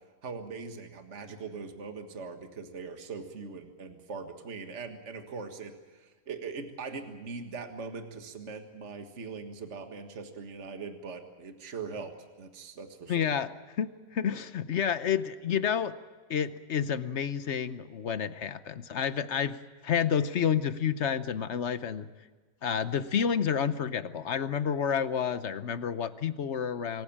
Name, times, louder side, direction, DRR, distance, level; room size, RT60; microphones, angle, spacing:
voice 1, 0.2-13.3, right 4 dB, 45° right, 6 dB, 1.9 m, -41 dB
voice 2, 13.1-13.5 13.8-15.9 16.3-19.6 19.8-22.1 22.6-27.0, left 8 dB, 55° left, 13 dB, 0.9 m, -29 dB
25.5 x 15.0 x 8.6 m, 1.4 s
omnidirectional pair, 1.8 m